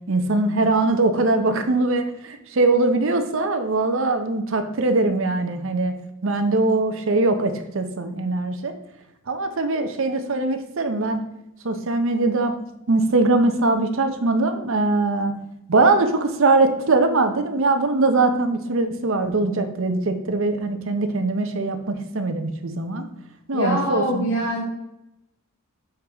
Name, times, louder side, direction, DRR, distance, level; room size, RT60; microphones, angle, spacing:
voice 1, 0.1-5.9 6.2-8.7 9.3-11.2 11.6-12.5 12.9-15.3 15.7-23.1 23.5-24.3, right 2 dB, 65° right, 7 dB, 0.7 m, -21 dB
voice 2, 23.5-24.6, equal, 70° left, -4 dB, 1.3 m, -24 dB
6.5 x 4.6 x 3.5 m, 0.87 s
head